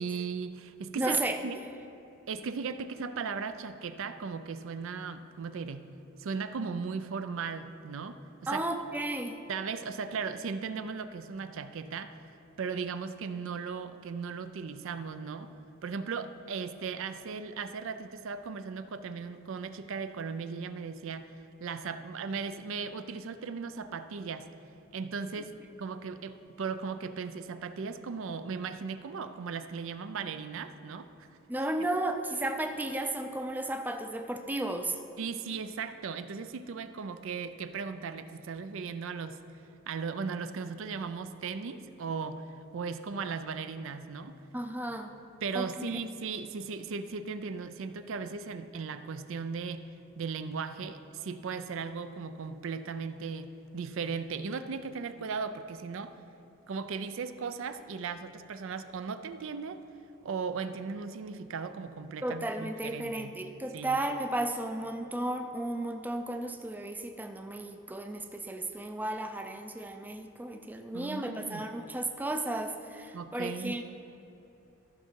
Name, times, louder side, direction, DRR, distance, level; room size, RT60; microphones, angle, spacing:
voice 1, 0.0-1.2 1.4-1.6 2.3-5.8 6.2-8.7 9.5-12.2 12.6-15.5 15.8-21.3 21.6-24.5 24.9-31.3 35.2-39.4 39.9-42.4 42.7-44.4 45.4-49.8 50.2-56.2 56.7-59.8 60.2-63.3 63.7-64.0 70.9-71.6 73.1-73.8, right 5 dB, 65° right, 11 dB, 0.4 m, -37 dB
voice 2, 0.9-1.4 8.5-9.3 31.5-35.0 44.5-45.1 45.5-46.0 62.2-73.8, right 1 dB, 10° right, 5 dB, 0.4 m, -34 dB
13.5 x 5.8 x 4.5 m, 2.9 s
head